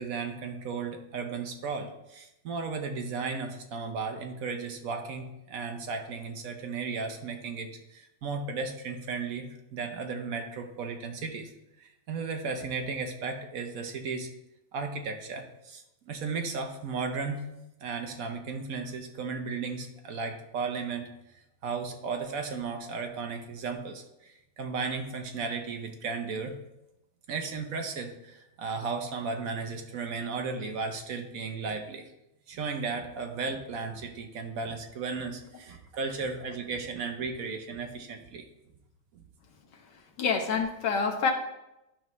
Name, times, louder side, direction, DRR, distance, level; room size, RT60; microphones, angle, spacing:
voice 1, 0.0-11.5 11.8-14.3 14.7-17.5 17.8-21.1 21.6-26.6 27.3-32.0 32.5-38.4 39.1-39.2, right 4 dB, 60° right, 5 dB, 1.1 m, -35 dB
voice 2, 39.7-41.3, left 5 dB, 75° left, 2 dB, 1.7 m, -28 dB
10.5 x 5.3 x 3.1 m, 0.89 s
omnidirectional pair, 1.9 m